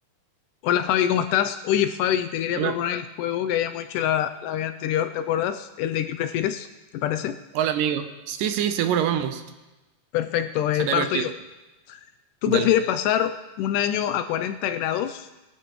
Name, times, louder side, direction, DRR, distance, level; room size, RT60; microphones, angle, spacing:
voice 1, 0.6-6.7 6.9-7.4 10.1-11.3 11.9-12.0 12.4-15.3, left 10 dB, 80° left, 9 dB, 2.0 m, -25 dB
voice 2, 7.5-9.4 10.8-11.2 12.5-12.7, right 9 dB, 80° right, 8 dB, 2.3 m, -25 dB
20.0 x 12.0 x 3.1 m, 1.1 s
omnidirectional pair, 4.0 m